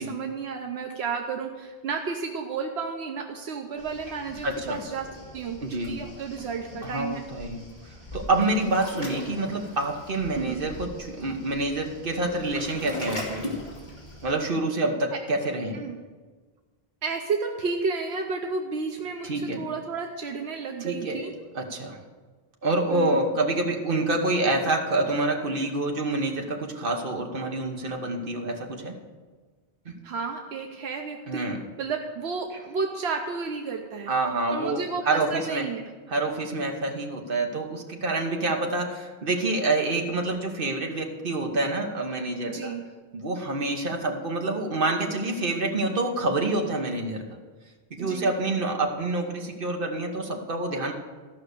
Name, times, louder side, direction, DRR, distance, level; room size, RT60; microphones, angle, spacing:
voice 1, 0.0-5.1 5.3-5.6 5.8-7.2 10.3-10.6 15.1-15.2 15.7-16.0 17.0-21.3 22.9-23.2 30.0-31.5 31.8-34.1 34.5-35.8 42.5-42.8 48.0-48.3, right 5 dB, 80° right, 3 dB, 1.0 m, -32 dB
Waves surf, 3.8-14.3, left 1 dB, 45° left, 2.4 m, -40 dB
voice 2, 4.4-4.8 5.6-6.0 6.8-7.6 8.1-13.5 14.2-15.8 19.2-19.6 20.8-21.3 21.5-22.0 22.6-28.9 29.8-29.9 31.3-31.6 34.1-35.6 36.1-42.7 43.1-47.2 47.9-50.9, right 2 dB, 55° right, 2 dB, 1.4 m, -27 dB
14.0 x 5.8 x 6.7 m, 1.4 s
omnidirectional pair, 1.1 m